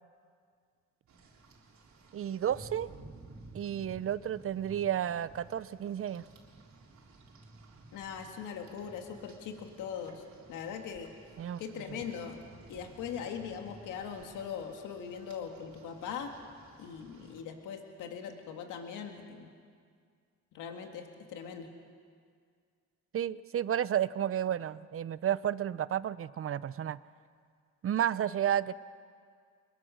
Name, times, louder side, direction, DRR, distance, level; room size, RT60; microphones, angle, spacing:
Rain, 1.1-17.4, right 2 dB, 65° right, 3.7 m, -55 dB
voice 1, 2.1-2.9 3.5-6.2 11.4-11.6 23.1-27.0 27.8-28.7, right 10 dB, 45° right, 17 dB, 0.7 m, -32 dB
voice 2, 7.9-11.1 11.6-12.4 12.7-16.3 16.8-19.5 20.5-21.7, left 7 dB, 90° left, 4 dB, 2.0 m, -41 dB
24.0 x 22.0 x 6.4 m, 2.1 s
cardioid pair, 90°, 30 cm